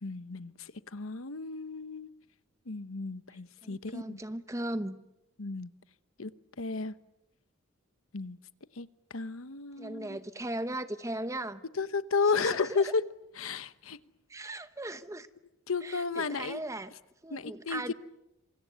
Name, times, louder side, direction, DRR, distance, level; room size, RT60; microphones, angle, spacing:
voice 1, 0.0-2.1 2.7-4.2 5.4-5.7 6.2-6.3 6.6-6.9 8.1-8.4 8.8-10.2 11.8-13.0 13.4-14.0 15.7-16.6 17.3-17.9, left 4 dB, 85° left, 1.0 m, -33 dB
voice 2, 3.6-4.9 9.8-11.6 12.3-12.8 14.3-15.3 15.8-16.9 17.2-17.9, right 1 dB, 15° right, 1.0 m, -37 dB
27.0 x 25.5 x 8.2 m
head